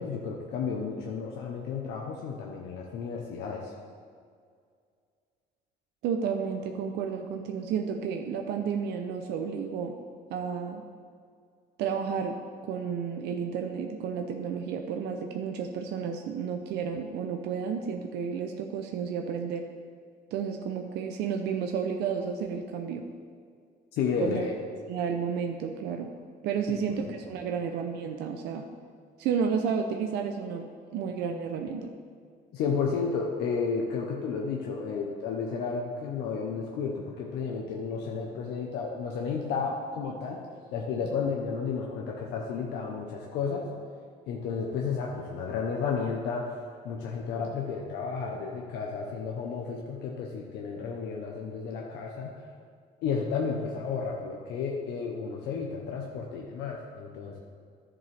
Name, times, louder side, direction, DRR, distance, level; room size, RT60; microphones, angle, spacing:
voice 1, 0.0-3.7 24.0-24.5 32.5-40.4 40.7-43.7 44.3-46.5 46.8-52.4 53.0-57.4, left 5 dB, 85° left, -1 dB, 0.9 m, -32 dB
voice 2, 6.0-10.0 10.3-10.8 11.8-19.7 20.3-23.0 24.2-24.4 24.9-26.1 26.4-28.7 29.2-31.9, right 6 dB, 80° right, 4 dB, 0.6 m, -32 dB
11.0 x 7.4 x 3.4 m, 2.1 s
cardioid pair, 110°, 17 cm